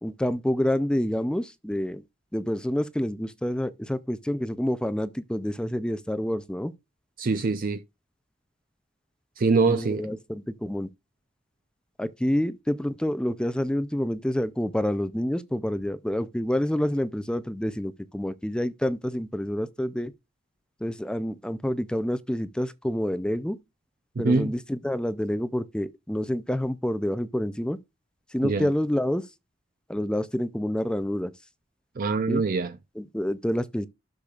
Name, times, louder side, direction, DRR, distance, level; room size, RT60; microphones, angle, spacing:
voice 1, 0.0-2.0 2.3-6.7 9.7-10.9 12.0-20.1 20.8-23.6 24.2-27.8 28.3-29.3 29.9-31.3 32.3-32.4 33.0-33.9, equal, 5° left, 0.4 m, -28 dB
voice 2, 7.2-7.8 9.4-10.0 24.2-24.5 28.4-28.7 32.0-32.8, right 4 dB, 45° right, 0.5 m, -24 dB
12.0 x 6.7 x 2.4 m
head